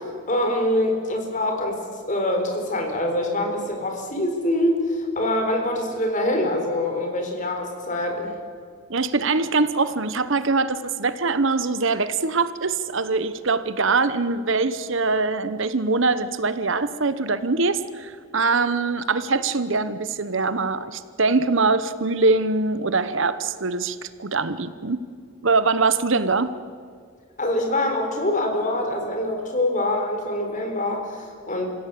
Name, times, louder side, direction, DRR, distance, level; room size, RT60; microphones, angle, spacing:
voice 1, 0.3-8.3 27.4-31.7, left 1 dB, 35° left, 3 dB, 4.1 m, -24 dB
voice 2, 8.9-25.0 25.4-26.5, right 3 dB, 60° right, 13 dB, 1.0 m, -23 dB
26.5 x 16.0 x 8.6 m, 2.2 s
head